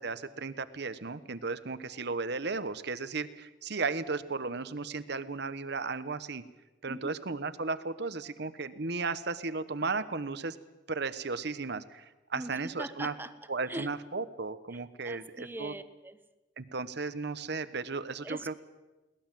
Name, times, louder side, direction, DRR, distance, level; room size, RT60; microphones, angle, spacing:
voice 1, 0.0-6.4 6.8-10.6 10.9-13.1 13.5-15.7 16.6-18.5, right 4 dB, 65° right, 13 dB, 1.1 m, -35 dB
voice 2, 6.9-7.2 12.3-13.3 13.7-13.9 15.0-16.2 18.2-18.6, right 1 dB, 10° right, 11 dB, 1.0 m, -41 dB
22.0 x 18.5 x 7.6 m, 1.1 s
head